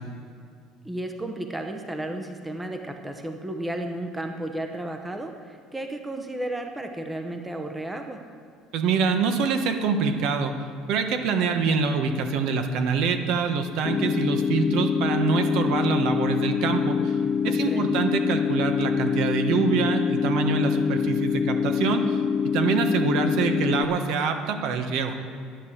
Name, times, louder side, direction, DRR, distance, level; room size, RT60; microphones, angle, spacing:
voice 1, 0.8-8.2 17.4-18.0, right 1 dB, 10° right, 5 dB, 0.9 m, -33 dB
voice 2, 8.7-10.5 10.9-17.2 17.4-22.2 22.5-25.2, right 5 dB, 65° right, 6 dB, 1.3 m, -25 dB
sound 1, 13.8-23.8, left 6 dB, 35° left, 0.6 m, -25 dB
10.5 x 10.5 x 7.4 m, 2.2 s
cardioid pair, 145°, 0 cm